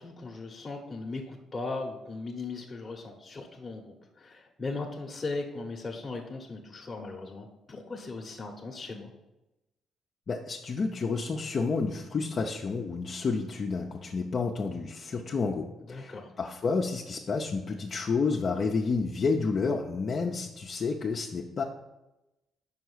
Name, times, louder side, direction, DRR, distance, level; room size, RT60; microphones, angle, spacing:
voice 1, 0.0-9.1 15.9-16.3, left 3 dB, 25° left, -1 dB, 1.0 m, -38 dB
voice 2, 10.3-21.6, left 4 dB, 45° left, 0 dB, 0.6 m, -30 dB
5.7 x 4.6 x 6.3 m, 0.96 s
cardioid pair, 90°, 0 cm